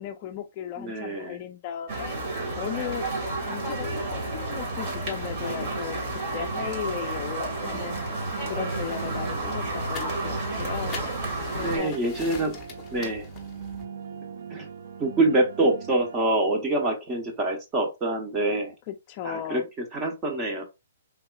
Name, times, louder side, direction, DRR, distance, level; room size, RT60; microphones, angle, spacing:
voice 1, 0.0-2.2 2.6-3.1 3.4-8.0 8.5-11.0 11.5-11.9 18.9-19.6, left 10 dB, 35° left, 0.3 m, -36 dB
voice 2, 0.8-1.4 11.5-12.5 12.9-13.3 14.5-14.7 15.0-18.7 19.2-20.6, right 2 dB, 20° right, 0.9 m, -26 dB
sound 1, 1.9-11.8, right 2 dB, 40° right, 1.6 m, -31 dB
sound 2, 7.7-16.3, right 7 dB, 60° right, 0.4 m, -40 dB
sound 3, 8.7-13.9, left 5 dB, 20° left, 0.8 m, -43 dB
3.4 x 2.9 x 2.3 m
hypercardioid pair, 145°, 0 cm